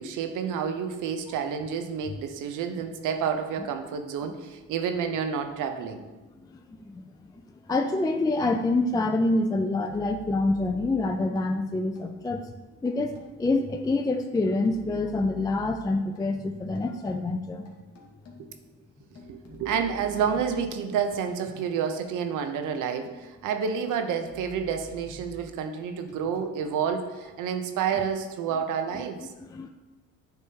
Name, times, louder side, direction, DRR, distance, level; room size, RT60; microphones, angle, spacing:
voice 1, 0.0-6.0 18.4-18.5 19.3-29.3, right 7 dB, 85° right, 7 dB, 0.7 m, -29 dB
voice 2, 6.5-7.0 7.7-12.5 12.8-17.6 29.5-29.7, left 2 dB, 15° left, 4 dB, 0.3 m, -26 dB
sound 1, 9.8-11.4 11.9-12.4 12.9-13.8 14.4-16.2 16.8-17.2 17.7-18.6 19.1-21.0 21.3-22.0 22.4-23.4 23.9-25.8 26.1-26.8 27.2-27.3, left 2 dB, 55° left, 1.4 m, -49 dB
9.5 x 3.6 x 2.8 m, 1.2 s
cardioid pair, 90°, 30 cm